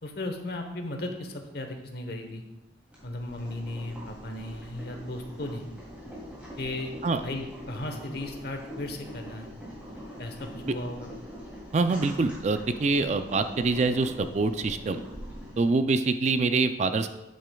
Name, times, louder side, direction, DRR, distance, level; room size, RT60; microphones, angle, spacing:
voice 1, 0.0-2.4 3.0-5.6 6.6-6.9 7.2-9.5 10.2-11.1, left 1 dB, 55° left, 5 dB, 1.0 m, -36 dB
Boiling, 2.9-15.6, equal, 5° right, 2.7 m, -43 dB
voice 2, 11.7-15.0 15.6-17.1, right 3 dB, 40° right, 9 dB, 0.4 m, -25 dB
9.0 x 8.2 x 2.3 m, 1.0 s
head